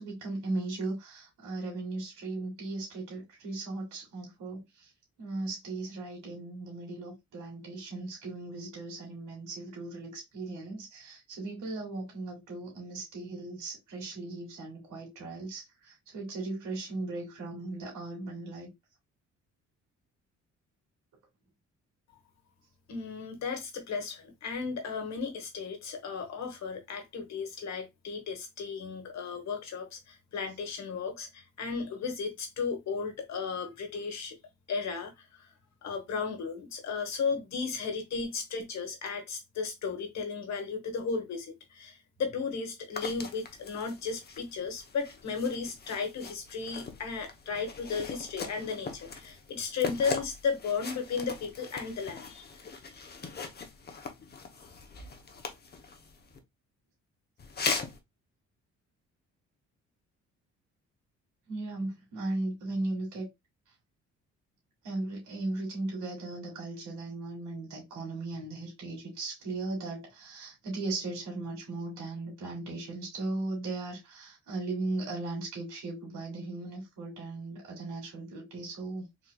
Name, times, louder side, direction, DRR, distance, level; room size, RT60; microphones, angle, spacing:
voice 1, 0.0-4.9 5.2-18.7 61.5-63.3 64.8-79.0, right 2 dB, 85° right, 2.0 m, -37 dB
voice 2, 22.9-34.4 34.7-35.5 35.8-52.5, left 5 dB, 65° left, 1.3 m, -35 dB
sound 1, 42.9-56.4 57.4-58.0, left 4 dB, 35° left, 0.8 m, -40 dB
3.8 x 2.9 x 2.3 m
cardioid pair, 90°, 30 cm